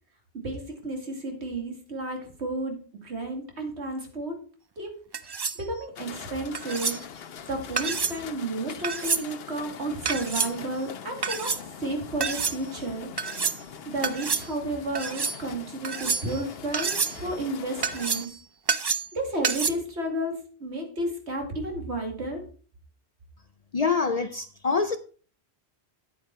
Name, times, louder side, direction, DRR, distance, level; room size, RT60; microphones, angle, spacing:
voice 1, 0.3-4.4 4.8-4.9 5.2-7.0 7.5-11.5 11.8-13.1 13.9-18.3 19.1-22.4, right 1 dB, 80° right, 2.6 m, -32 dB
sound 1, 5.1-5.6 6.5-7.0 7.8-8.2 8.8-9.2 10.0-10.5 11.2-11.6 12.2-12.6 13.2-13.6 14.0-14.5 14.9-15.4 15.8-16.4 16.7-17.2 17.8-18.3 18.7-19.1 19.4-19.7, right 5 dB, 40° right, 0.3 m, -28 dB
sound 2, 6.0-18.3, left 8 dB, 65° left, 0.9 m, -43 dB
voice 2, 23.7-25.0, left 5 dB, 50° left, 0.5 m, -25 dB
9.3 x 8.7 x 4.5 m
omnidirectional pair, 1.1 m